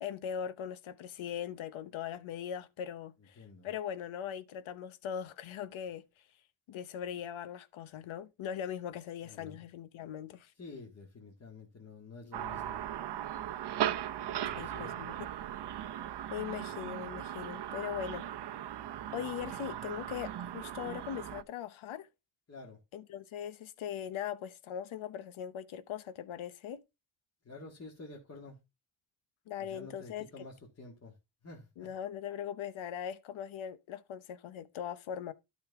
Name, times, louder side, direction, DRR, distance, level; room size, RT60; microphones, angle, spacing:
voice 1, 0.0-6.0 6.7-10.5 14.6-15.1 16.3-18.2 19.1-22.1 22.9-26.8 29.5-30.3 31.8-35.3, left 9 dB, 80° left, 0.9 m, -40 dB
voice 2, 3.2-3.7 9.2-9.6 10.5-12.8 14.4-15.0 22.5-22.8 27.4-28.6 29.6-31.2 31.4-31.9, left 3 dB, 30° left, 1.8 m, -50 dB
sound 1, 12.3-21.4, right 11 dB, 55° right, 0.7 m, -38 dB
12.0 x 5.4 x 3.5 m
cardioid pair, 120°, 47 cm